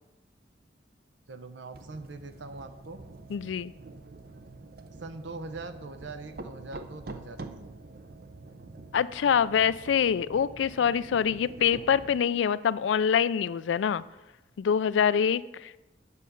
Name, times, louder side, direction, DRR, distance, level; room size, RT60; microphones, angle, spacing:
voice 1, 1.3-3.0 5.0-7.7, right 3 dB, 90° right, 9 dB, 0.8 m, -42 dB
sound 1, 1.7-12.2, right 3 dB, 55° right, 0.6 m, -46 dB
voice 2, 3.3-3.7 8.9-14.0 14.6-15.8, left 7 dB, 90° left, 18 dB, 0.3 m, -25 dB
8.3 x 5.6 x 6.7 m, 1.0 s
head